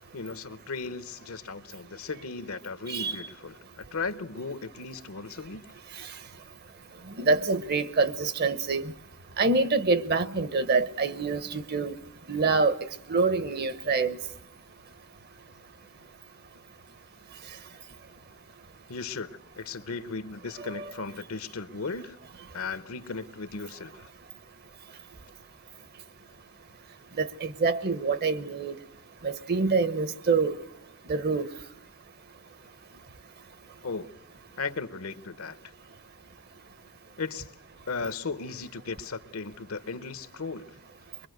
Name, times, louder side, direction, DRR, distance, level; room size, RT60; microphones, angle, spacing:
voice 1, 0.1-5.7 18.9-22.2 22.5-24.1 33.8-34.1 34.6-35.6 37.2-37.5 37.9-40.7, left 4 dB, 75° left, 0.9 m, -36 dB
voice 2, 7.2-8.9 9.4-11.9 12.3-12.8 13.1-14.2 20.6-20.9 27.2-28.8 29.2-30.6 31.1-31.5, right 4 dB, 45° right, 0.9 m, -26 dB
23.0 x 23.0 x 7.9 m
head